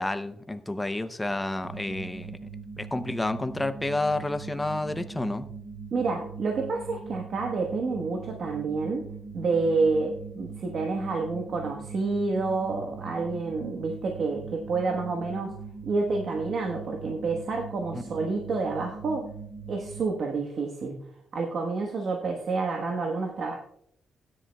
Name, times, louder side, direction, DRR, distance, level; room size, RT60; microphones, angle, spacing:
voice 1, 0.0-2.4 2.8-5.5 17.9-18.0, left 2 dB, 10° left, 10 dB, 0.6 m, -30 dB
sound 1, 1.6-20.0, right 5 dB, 30° right, 3.8 m, -41 dB
voice 2, 5.9-9.0 9.3-15.6 15.8-19.3 19.7-21.1 21.3-23.6, right 3 dB, 50° right, 2 dB, 1.2 m, -29 dB
16.5 x 10.0 x 2.3 m, 0.73 s
cardioid pair, 150°, 0 cm